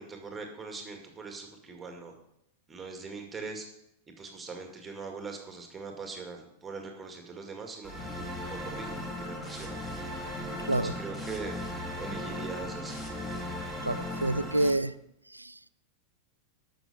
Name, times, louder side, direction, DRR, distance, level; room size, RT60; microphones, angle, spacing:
voice 1, 0.0-2.1 2.7-3.7 4.2-7.9 8.5-9.8 10.6-11.7 12.0-13.0, right 4 dB, 15° right, 3 dB, 2.2 m, -41 dB
sound 1, 7.8-14.7, left 1 dB, 10° left, 3.1 m, -37 dB
voice 2, 13.8-14.9 15.3-15.6, right 1 dB, 85° right, 17 dB, 0.4 m, -28 dB
12.0 x 6.5 x 6.8 m, 0.79 s
figure-of-eight pair, 90°, 0 cm